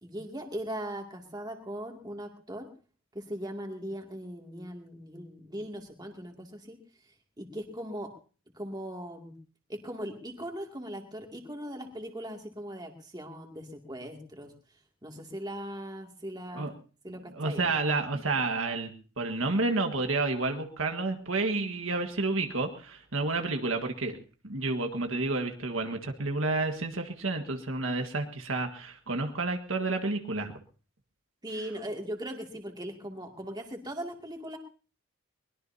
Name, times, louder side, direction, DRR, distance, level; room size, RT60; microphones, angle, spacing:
voice 1, 0.0-2.7 3.1-6.8 7.1-8.1 8.5-9.3 9.7-14.5 15.0-16.7 17.0-17.7 31.4-34.6, equal, 20° right, 2 dB, 2.5 m, -39 dB
voice 2, 17.3-24.2 24.4-30.5, right 3 dB, 65° right, 4 dB, 1.7 m, -30 dB
23.0 x 21.0 x 2.8 m, 0.38 s
head